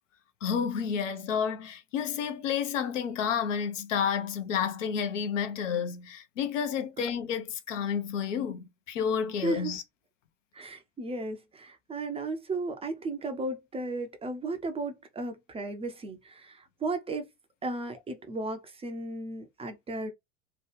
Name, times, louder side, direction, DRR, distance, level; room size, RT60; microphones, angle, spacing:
voice 1, 0.4-9.8, left 7 dB, 70° left, 0.8 m, -30 dB
voice 2, 9.4-9.8 10.5-17.3 17.6-20.1, right 2 dB, 15° right, 0.5 m, -35 dB
3.0 x 2.2 x 3.2 m
hypercardioid pair, 90°, 39 cm